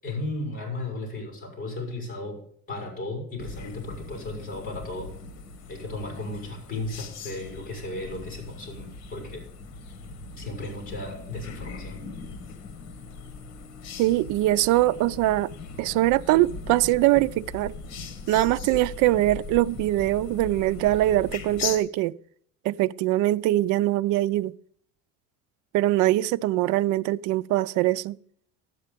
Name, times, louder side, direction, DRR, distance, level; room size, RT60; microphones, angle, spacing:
voice 1, 0.0-2.4 2.7-5.1 5.7-9.4 10.4-12.0, left 2 dB, 30° left, 5.5 m, -35 dB
sound 1, 3.4-21.8, left 5 dB, 60° left, 1.8 m, -39 dB
voice 2, 14.0-15.5 15.8-17.7 18.3-22.1 22.6-24.5 25.7-28.2, right 16 dB, 80° right, 0.5 m, -22 dB
12.0 x 8.6 x 5.1 m
cardioid pair, 160°, 30 cm